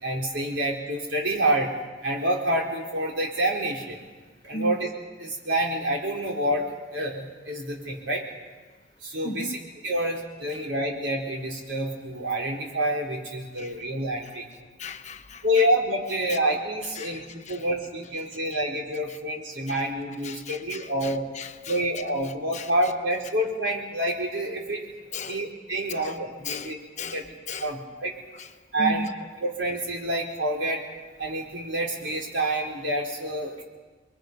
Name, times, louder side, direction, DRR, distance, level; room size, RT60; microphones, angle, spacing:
voice 1, 0.0-1.7 2.0-4.0 4.4-4.9 5.2-6.6 6.9-8.2 9.0-9.6 9.8-14.4 15.4-21.3 21.7-24.9 25.3-26.8 27.1-27.2 27.6-28.1 28.7-29.1 29.4-30.8 31.2-33.6, right 1 dB, 75° right, 0 dB, 4.1 m, -27 dB
voice 2, 9.2-9.6 10.5-10.6 13.6-13.8 14.2-14.4 14.8-15.7 16.1-16.4 16.8-17.7 18.0-18.6 18.9-19.2 19.7-21.9 22.2-23.2 25.1-25.5 25.9-26.2 26.4-27.8 28.3-29.1, left 2 dB, 40° left, 7 dB, 1.1 m, -38 dB
30.0 x 22.0 x 5.4 m, 1.3 s
head